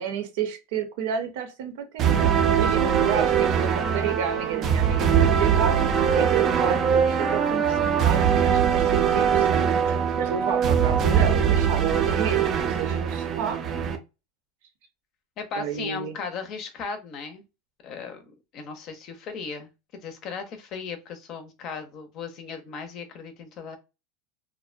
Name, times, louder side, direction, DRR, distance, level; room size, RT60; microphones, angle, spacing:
voice 1, 0.0-2.1 2.6-13.6 15.6-16.1, right 7 dB, 75° right, 0.7 m, -31 dB
sound 1, 2.0-14.0, right 7 dB, 30° right, 0.4 m, -22 dB
voice 2, 15.4-17.4 17.8-19.7 20.0-23.8, left 5 dB, 45° left, 0.6 m, -36 dB
2.5 x 2.1 x 2.4 m
supercardioid pair, 140°, 0 cm